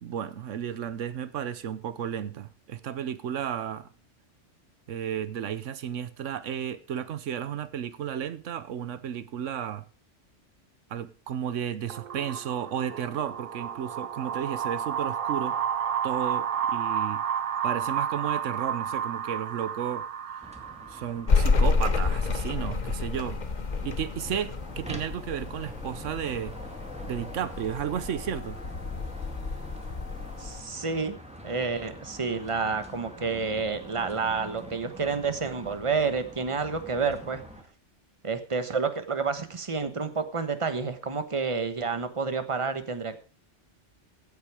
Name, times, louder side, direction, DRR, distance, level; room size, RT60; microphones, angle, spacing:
voice 1, 0.0-3.9 4.9-9.8 10.9-15.6 16.0-17.2 17.6-20.1 20.9-23.4 23.8-26.6 27.0-28.6, right 9 dB, 85° right, 1.1 m, -33 dB
sound 1, 11.9-21.4, right 8 dB, 55° right, 0.9 m, -31 dB
sound 2, 20.4-37.6, right 1 dB, 5° right, 2.2 m, -45 dB
sound 3, 21.3-30.6, left 4 dB, 40° left, 1.1 m, -29 dB
voice 2, 30.4-31.2 31.4-37.4 38.2-43.2, right 5 dB, 25° right, 1.3 m, -29 dB
16.0 x 8.6 x 4.8 m
omnidirectional pair, 1.2 m